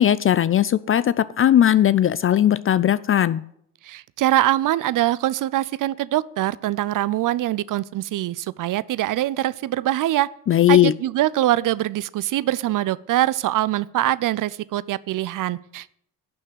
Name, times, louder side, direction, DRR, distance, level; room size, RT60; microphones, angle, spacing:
voice 1, 0.0-3.4 10.5-10.9, left 11 dB, 30° left, 17 dB, 0.4 m, -18 dB
voice 2, 3.8-10.3 10.7-15.9, right 14 dB, 45° right, 19 dB, 0.6 m, -23 dB
11.5 x 6.5 x 9.2 m, 0.69 s
hypercardioid pair, 55°, 47 cm